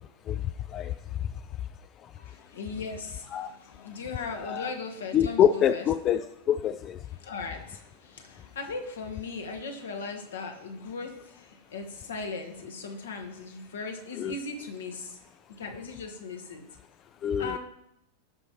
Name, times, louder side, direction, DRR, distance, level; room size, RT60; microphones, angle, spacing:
voice 1, 2.2-5.8 7.1-16.7 17.4-17.6, left 4 dB, 65° left, 4 dB, 1.3 m, -38 dB
voice 2, 5.1-7.0 14.2-14.3 17.2-17.6, left 9 dB, 30° left, 12 dB, 0.3 m, -25 dB
15.0 x 5.5 x 2.9 m, 0.79 s
figure-of-eight pair, 90°, 0 cm